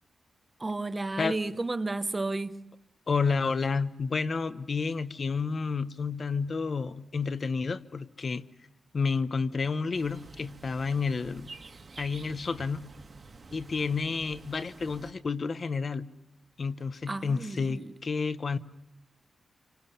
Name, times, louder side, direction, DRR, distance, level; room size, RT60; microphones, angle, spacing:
voice 1, 0.6-2.6 17.1-17.9, right 2 dB, 20° right, 0.9 m, -32 dB
voice 2, 3.1-8.5 8.9-11.5 12.0-12.8 13.5-16.1 16.6-18.6, left 4 dB, 40° left, 0.9 m, -30 dB
sound 1, 9.9-15.1, right 3 dB, 35° right, 1.9 m, -49 dB
28.5 x 25.0 x 6.9 m
wide cardioid pair, 160°, 0 cm